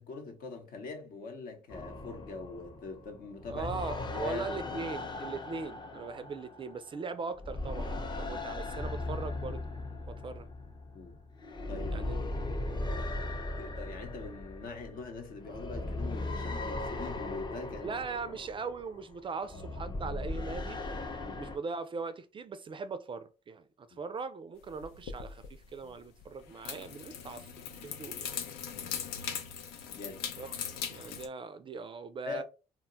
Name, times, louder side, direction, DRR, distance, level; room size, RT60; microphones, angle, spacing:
voice 1, 0.0-4.5 8.3-8.4 10.9-11.2 11.7-12.1 12.6-12.9 13.6-18.0 18.3-18.4 21.2-21.4 23.9-24.0 28.7-28.9 29.9-30.3 32.3-32.4, left 4 dB, 65° left, 0.8 m, -43 dB
sound 1, 1.7-7.0 7.3-21.6, left 2 dB, 30° left, 0.6 m, -38 dB
voice 2, 3.5-9.6 10.1-10.5 11.9-12.3 17.8-20.8 21.3-28.4 30.4-30.5 30.9-32.4, right 4 dB, 30° right, 0.3 m, -40 dB
sound 2, 24.7-31.3, left 8 dB, 85° left, 0.5 m, -40 dB
2.2 x 2.0 x 3.7 m
supercardioid pair, 65°, 16 cm